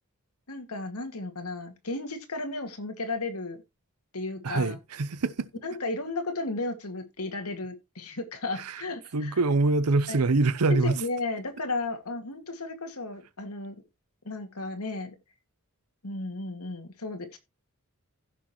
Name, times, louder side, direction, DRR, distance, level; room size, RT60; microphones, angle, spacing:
voice 1, 0.5-3.6 4.1-4.8 5.6-9.4 10.1-10.2 10.7-13.8 14.2-15.2 16.0-17.4, left 2 dB, 80° left, 2.1 m, -34 dB
voice 2, 4.4-5.5 8.5-8.8 9.1-11.0, right 3 dB, 85° right, 0.7 m, -25 dB
15.5 x 6.3 x 3.1 m
head